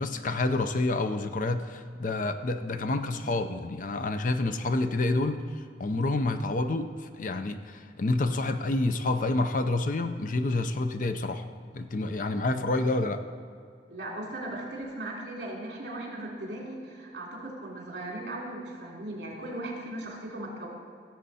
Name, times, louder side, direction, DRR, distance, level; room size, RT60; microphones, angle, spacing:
voice 1, 0.0-11.4 11.7-13.2, left 2 dB, 45° left, 8 dB, 0.6 m, -28 dB
voice 2, 13.9-20.7, right 1 dB, 65° right, -2 dB, 3.2 m, -38 dB
16.5 x 7.6 x 4.2 m, 2.3 s
head